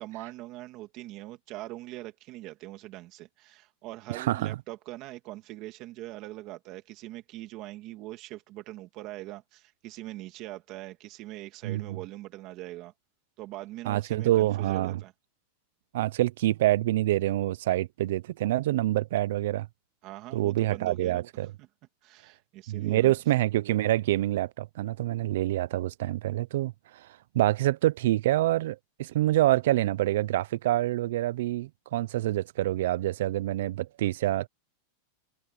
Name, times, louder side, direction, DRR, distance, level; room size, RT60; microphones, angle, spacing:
voice 1, 0.0-12.9 13.4-15.1 20.0-21.2 21.6-21.7 22.0-23.1, right 17 dB, 40° right, 2.4 m, -42 dB
voice 2, 4.1-4.6 11.6-12.0 13.9-15.0 15.9-19.7 20.3-21.5 22.7-26.7 27.3-34.5, right 15 dB, 70° right, 0.5 m, -26 dB
supercardioid pair, 160°, 0 cm